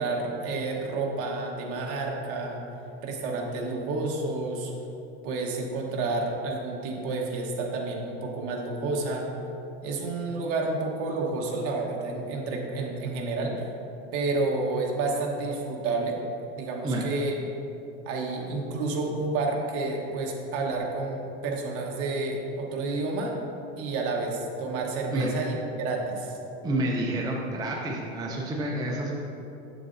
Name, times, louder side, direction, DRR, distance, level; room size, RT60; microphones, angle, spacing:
voice 1, 0.0-2.6 3.0-4.7 5.2-9.3 9.8-13.7 14.1-16.2 16.5-17.4 18.0-23.3 23.8-26.4, right 3 dB, 45° right, 0 dB, 1.1 m, -30 dB
voice 2, 26.6-29.1, right 1 dB, 10° right, -1 dB, 0.5 m, -29 dB
7.6 x 6.8 x 2.6 m, 2.8 s
supercardioid pair, 140°, 31 cm